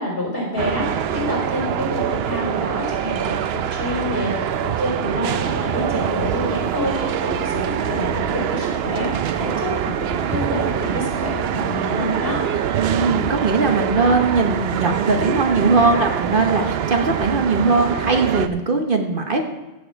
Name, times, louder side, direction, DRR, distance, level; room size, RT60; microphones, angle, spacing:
voice 1, 0.0-3.4 3.7-4.5 4.8-9.1 9.3-12.4, left 1 dB, 55° left, -3 dB, 4.3 m, -27 dB
sound 1, 0.6-18.5, right 9 dB, 70° right, 0.8 m, -24 dB
sound 2, 4.7-17.9, right 3 dB, 20° right, 3.4 m, -40 dB
voice 2, 12.8-19.4, right 3 dB, 50° right, 4 dB, 1.2 m, -19 dB
14.5 x 7.1 x 4.6 m, 1.1 s
omnidirectional pair, 1.2 m